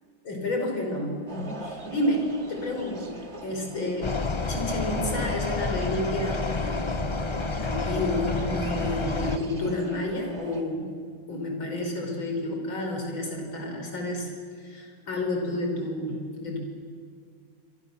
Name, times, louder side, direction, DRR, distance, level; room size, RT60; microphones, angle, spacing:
voice 1, 0.3-4.2 4.5-7.1 7.6-10.9 11.3-14.3 14.6-16.6, left 1 dB, 85° left, 1 dB, 5.8 m, -30 dB
sound 1, 1.3-10.6, right 3 dB, 35° right, 2.3 m, -42 dB
sound 2, 4.0-9.4, left 3 dB, 35° left, 0.4 m, -29 dB
26.5 x 25.0 x 7.1 m, 2.1 s
omnidirectional pair, 2.1 m